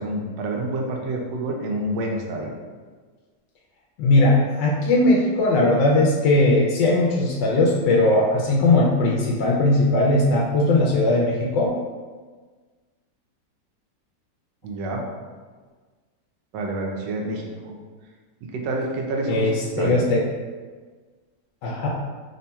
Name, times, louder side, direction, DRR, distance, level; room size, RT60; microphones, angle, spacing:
voice 1, 0.0-2.6 14.6-15.0 16.5-17.7 18.5-20.0, right 2 dB, 80° right, 0 dB, 1.2 m, -28 dB
voice 2, 4.0-11.7 19.3-20.2 21.6-21.9, left 2 dB, 85° left, -3 dB, 1.2 m, -19 dB
4.1 x 3.3 x 2.2 m, 1.4 s
omnidirectional pair, 1.9 m